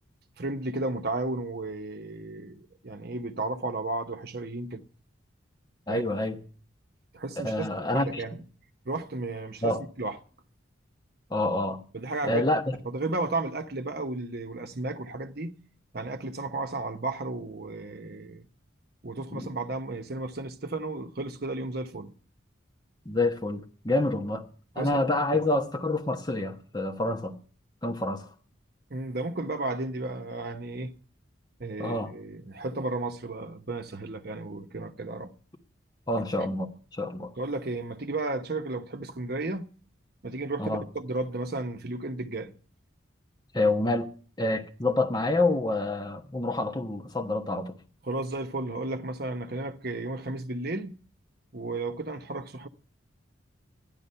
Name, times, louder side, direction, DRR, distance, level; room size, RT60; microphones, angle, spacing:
voice 1, 0.4-4.9 5.9-6.0 7.1-7.7 7.9-8.4 8.8-10.2 11.9-12.4 12.8-15.6 15.9-18.5 19.0-22.1 24.8-24.9 25.3-25.4 28.9-30.9 31.6-35.3 37.4-39.7 40.2-42.5 48.0-51.0 51.5-52.7, right 2 dB, 50° right, 0.9 m, -33 dB
voice 2, 5.9-6.4 7.4-8.2 9.6-9.8 11.3-11.8 12.2-12.8 19.3-19.5 23.0-24.4 24.7-27.3 27.8-28.3 31.8-32.1 36.1-37.3 40.6-40.8 43.5-44.1 44.4-47.8, left 2 dB, 20° left, 1.2 m, -27 dB
14.0 x 10.5 x 5.6 m
head